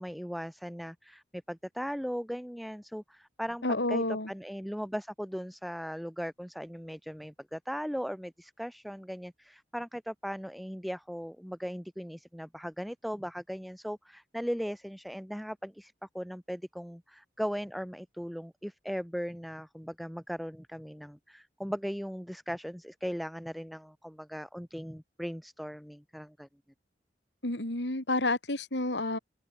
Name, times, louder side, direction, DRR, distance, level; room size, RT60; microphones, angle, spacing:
voice 1, 0.0-26.5, equal, ahead, 4.0 m, -38 dB
voice 2, 3.6-4.3 27.4-29.2, left 2 dB, 85° left, 3.9 m, -30 dB
open air
head